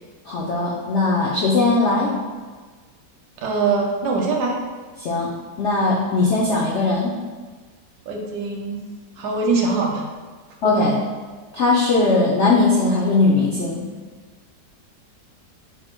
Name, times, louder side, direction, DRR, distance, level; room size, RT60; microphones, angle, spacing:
voice 1, 0.3-2.1 5.0-7.2 10.6-11.0 11.5-13.9, left 3 dB, 80° left, -3 dB, 0.6 m, -19 dB
voice 2, 3.4-4.6 8.1-8.8 9.2-10.0, right 4 dB, 70° right, 0 dB, 1.1 m, -22 dB
5.6 x 2.0 x 4.3 m, 1.4 s
omnidirectional pair, 1.9 m